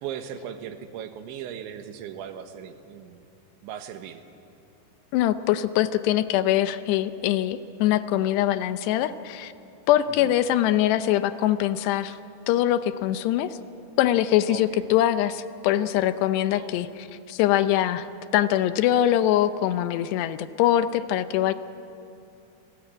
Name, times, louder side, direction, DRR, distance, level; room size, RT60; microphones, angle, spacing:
voice 1, 0.0-3.3 3.6-4.2 10.1-10.3 14.5-14.8 16.5-16.7, right 9 dB, 85° right, 7 dB, 3.7 m, -38 dB
voice 2, 5.1-9.5 9.9-12.2 12.5-13.6 14.0-18.1 18.3-21.5, left 12 dB, 80° left, 12 dB, 2.7 m, -23 dB
29.5 x 19.5 x 8.9 m, 2.7 s
omnidirectional pair, 5.2 m